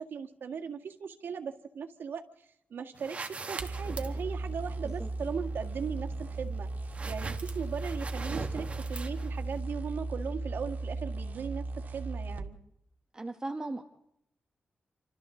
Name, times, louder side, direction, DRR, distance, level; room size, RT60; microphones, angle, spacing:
voice 1, 0.0-6.7 7.0-12.6, right 6 dB, 85° right, 4 dB, 1.8 m, -38 dB
sound 1, 2.9-9.6, right 3 dB, 40° right, 1.9 m, -43 dB
sound 2, 3.6-12.5, right 2 dB, 55° right, 1.9 m, -36 dB
voice 2, 13.1-13.8, right 2 dB, 20° right, 4 dB, 1.4 m, -36 dB
28.0 x 26.0 x 3.9 m, 0.78 s
wide cardioid pair, 125°, 4 cm